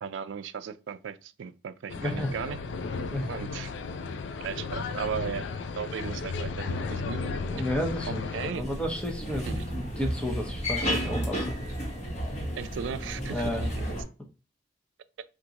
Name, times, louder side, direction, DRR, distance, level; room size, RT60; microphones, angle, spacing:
voice 1, 0.0-2.6 3.3-3.7 4.4-5.5 5.8-7.2 8.1-8.6 9.4-9.6 12.6-13.4 13.7-14.0, right 7 dB, 90° right, 0.4 m, -36 dB
sound 1, 1.9-8.5, left 4 dB, 80° left, 0.4 m, -34 dB
voice 2, 7.4-8.2 8.5-9.5 9.7-11.5 13.3-13.7, equal, 5° left, 0.7 m, -32 dB
sound 2, 8.5-14.0, equal, 40° left, 1.2 m, -32 dB
3.7 x 2.4 x 2.8 m
head